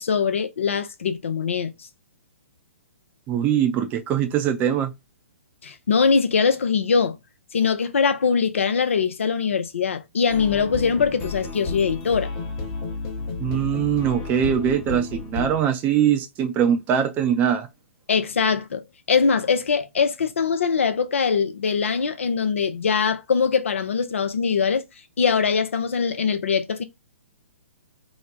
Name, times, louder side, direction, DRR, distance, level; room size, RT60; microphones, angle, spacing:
voice 1, 0.0-1.7 5.6-7.2 7.5-12.3 18.1-18.8 19.1-24.8 25.2-26.8, left 5 dB, 65° left, 0.6 m, -22 dB
voice 2, 3.3-4.9 13.4-17.7, right 9 dB, 25° right, 0.6 m, -22 dB
sound 1, 10.3-15.6, left 4 dB, 30° left, 0.9 m, -32 dB
3.0 x 2.2 x 3.8 m
figure-of-eight pair, 125°, 7 cm